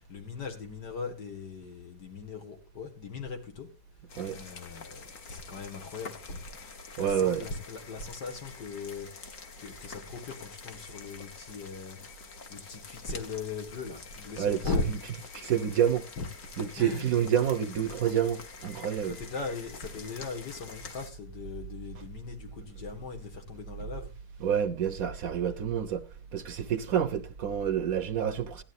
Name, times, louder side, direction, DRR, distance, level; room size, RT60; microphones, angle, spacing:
voice 1, 0.0-3.7 4.3-6.4 7.0-9.1 9.6-12.0 12.5-14.9 16.1-16.3 16.7-17.3 19.1-24.1, left 4 dB, 80° left, 2.4 m, -38 dB
sound 1, 4.1-21.1, left 4 dB, 50° left, 1.5 m, -47 dB
voice 2, 7.0-7.5 14.4-14.6 15.3-16.1 16.6-19.2 24.4-26.1 26.3-28.6, right 9 dB, 65° right, 1.1 m, -28 dB
16.0 x 11.5 x 2.6 m
omnidirectional pair, 1.8 m